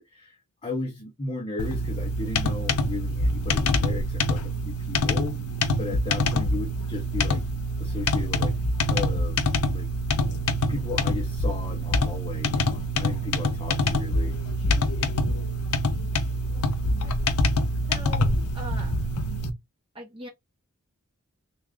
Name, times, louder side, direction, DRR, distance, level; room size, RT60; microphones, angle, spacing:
voice 1, 0.0-5.4 5.8-7.4 7.8-8.5 8.9-9.9 10.7-14.4, left 3 dB, 25° left, 0.7 m, -35 dB
sound 1, 1.6-19.5, left 1 dB, 75° left, 0.6 m, -25 dB
voice 2, 17.9-18.9 19.9-20.3, equal, 25° right, 1.2 m, -41 dB
3.3 x 2.4 x 3.5 m
head